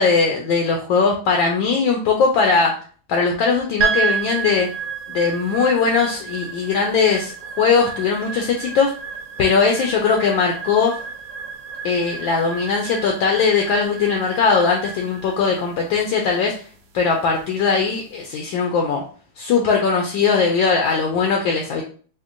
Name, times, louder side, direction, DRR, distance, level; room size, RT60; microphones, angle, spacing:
voice 1, 0.0-2.8 3.1-4.7 5.1-8.9 9.4-11.0 11.8-16.5 16.9-19.0 19.4-21.8, left 5 dB, 75° left, 1 dB, 1.2 m, -19 dB
sound 1, 3.8-18.2, right 6 dB, 90° right, 0.8 m, -31 dB
4.3 x 2.4 x 2.5 m, 0.41 s
omnidirectional pair, 2.4 m